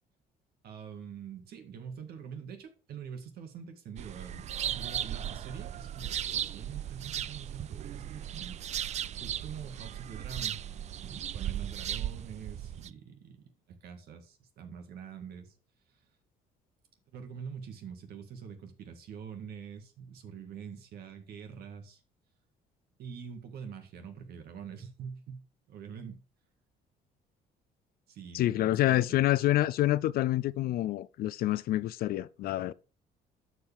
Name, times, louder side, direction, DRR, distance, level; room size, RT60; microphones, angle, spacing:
voice 1, 0.6-8.6 9.2-10.6 11.0-15.5 17.1-22.0 23.0-26.2 28.1-29.2, right 7 dB, 65° right, 1.9 m, -45 dB
sound 1, 4.0-12.9, right 10 dB, 40° right, 0.4 m, -37 dB
voice 2, 28.3-32.7, left 14 dB, 65° left, 0.4 m, -27 dB
13.0 x 4.9 x 3.5 m
cardioid pair, 110°, 17 cm